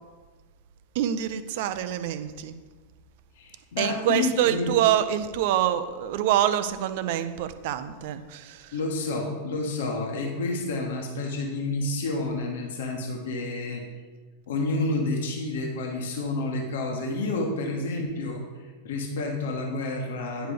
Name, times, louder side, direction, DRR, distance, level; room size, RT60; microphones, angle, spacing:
voice 1, 0.9-2.5 3.8-8.7, right 11 dB, 50° right, 11 dB, 0.6 m, -26 dB
voice 2, 3.4-4.7 8.7-13.8 14.5-20.5, left 2 dB, 60° left, 1 dB, 1.3 m, -29 dB
10.0 x 5.0 x 5.0 m, 1.4 s
figure-of-eight pair, 90°, 0 cm